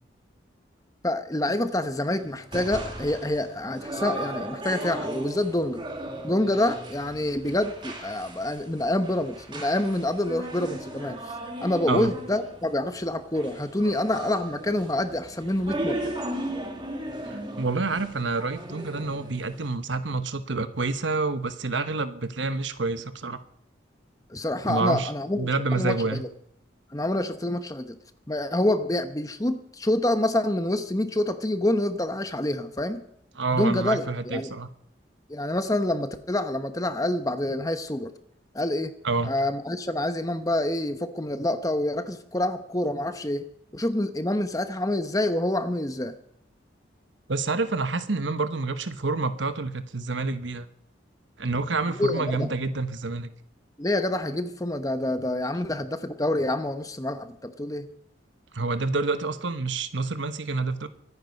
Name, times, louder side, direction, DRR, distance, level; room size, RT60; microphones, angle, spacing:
voice 1, 1.0-5.8 6.2-11.2 11.6-16.1 24.3-26.3 26.9-28.0 28.3-33.0 33.5-34.5 35.3-38.1 38.5-38.9 39.2-43.4 43.7-46.1 51.9-52.5 53.8-57.9, left 1 dB, 20° left, 10 dB, 1.0 m, -27 dB
sound 1, 2.2-19.7, right 1 dB, 25° right, 2.1 m, -37 dB
voice 2, 17.3-23.4 24.7-25.1 25.4-26.2 33.3-34.7 39.0-39.3 47.3-50.7 51.4-53.3 58.5-60.9, right 3 dB, 75° right, 11 dB, 1.1 m, -28 dB
24.5 x 9.6 x 5.4 m, 0.72 s
head